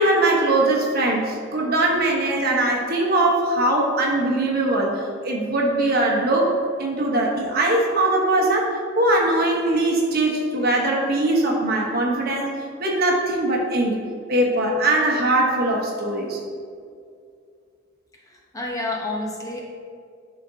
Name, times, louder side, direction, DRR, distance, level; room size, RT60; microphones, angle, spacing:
voice 1, 0.0-12.5 12.8-14.0 14.3-16.4, right 2 dB, 50° right, -1 dB, 1.1 m, -21 dB
voice 2, 18.1-19.6, left 2 dB, 20° left, -2 dB, 0.8 m, -30 dB
11.0 x 3.8 x 2.8 m, 2.3 s
head